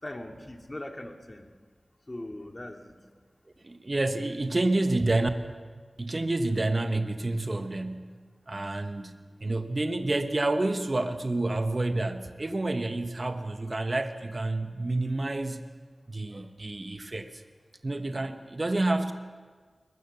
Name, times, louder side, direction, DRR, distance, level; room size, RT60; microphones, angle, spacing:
voice 1, 0.0-1.5 2.1-3.0, left 1 dB, 35° left, 3 dB, 2.7 m, -40 dB
voice 2, 3.6-5.3 6.0-8.1 8.5-9.1 9.4-15.6 16.1-17.4 17.8-19.1, right 2 dB, 45° right, 7 dB, 1.4 m, -29 dB
21.5 x 21.0 x 7.0 m, 1.6 s
cardioid pair, 40°, 0 cm